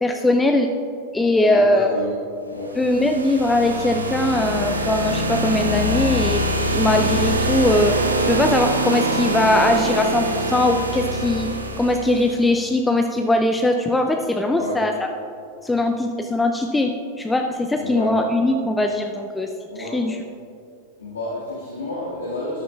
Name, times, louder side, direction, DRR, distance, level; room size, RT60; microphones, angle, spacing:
voice 1, 0.0-0.7 1.1-2.0 2.8-6.4 6.7-7.9 8.2-11.5 11.8-15.1 15.6-19.5 19.8-20.2, left 1 dB, 10° left, 4 dB, 0.5 m, -20 dB
voice 2, 1.4-2.2 2.5-2.8 14.5-14.8 17.7-18.1 19.7-20.0 21.0-22.6, left 1 dB, 75° left, -6 dB, 1.7 m, -30 dB
sound 1, 2.6-12.5, right 1 dB, 80° right, 0.8 m, -24 dB
13.5 x 10.0 x 2.4 m, 2.5 s
figure-of-eight pair, 90°, 0 cm